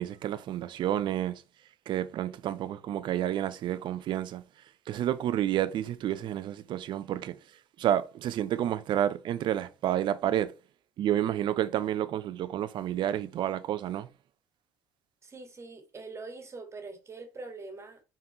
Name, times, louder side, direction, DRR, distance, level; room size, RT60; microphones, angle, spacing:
voice 1, 0.0-1.4 1.9-4.4 4.9-7.3 7.8-10.5 11.0-14.1, right 11 dB, 60° right, 0.9 m, -30 dB
voice 2, 15.2-18.0, right 3 dB, 30° right, 2.2 m, -43 dB
6.1 x 4.4 x 4.5 m
hypercardioid pair, 65°, 9 cm